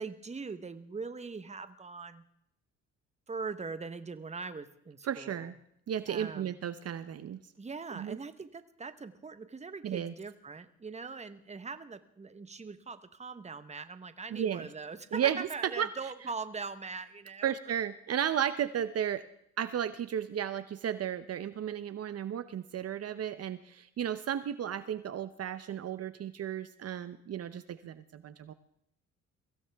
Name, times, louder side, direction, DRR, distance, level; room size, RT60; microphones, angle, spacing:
voice 1, 0.0-2.2 3.3-5.6 6.1-6.6 7.6-17.5, right 4 dB, 20° right, 11 dB, 1.1 m, -41 dB
voice 2, 5.0-5.5 5.9-7.4 8.0-8.2 9.8-10.1 14.3-14.7 15.1-15.5 15.8-15.9 17.4-19.2 19.6-28.5, right 9 dB, 55° right, 12 dB, 0.8 m, -34 dB
23.5 x 16.0 x 3.5 m, 0.73 s
cardioid pair, 90°, 30 cm